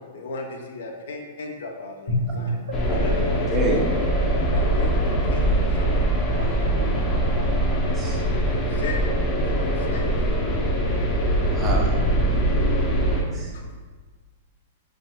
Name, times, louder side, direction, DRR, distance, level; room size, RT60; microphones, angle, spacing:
voice 1, 0.1-2.6 2.9-3.5 4.4-6.1 8.2-9.0 9.3-10.4 13.5-13.6, left 3 dB, 75° left, 2 dB, 0.5 m, -36 dB
Drum, 2.1-4.5, left 1 dB, 55° left, 0.8 m, -30 dB
voice 2, 2.3-3.1 6.4-7.6, right 2 dB, 85° right, 0 dB, 0.6 m, -38 dB
sound 1, 2.7-13.2, right 1 dB, 25° left, 0.6 m, -22 dB
voice 3, 3.5-3.9 7.9-8.2 11.5-11.9 13.3-13.5, right 1 dB, 25° right, -1 dB, 0.6 m, -27 dB
3.4 x 2.6 x 2.2 m, 1.4 s
hypercardioid pair, 130°, 0 cm